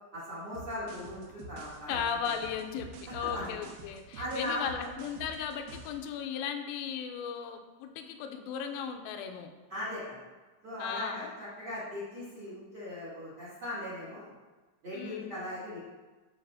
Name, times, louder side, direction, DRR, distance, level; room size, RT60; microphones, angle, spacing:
voice 1, 0.1-2.0 3.2-3.5 4.2-4.9 9.7-10.0 10.6-14.3 14.8-15.8, left 1 dB, 40° right, -10 dB, 2.0 m, -38 dB
sound 1, 0.5-6.0, right 3 dB, 80° right, 3.1 m, -47 dB
voice 2, 1.9-9.5 10.8-11.3 14.9-15.4, left 7 dB, 85° left, 6 dB, 3.2 m, -36 dB
12.0 x 4.0 x 2.6 m, 1.3 s
omnidirectional pair, 5.9 m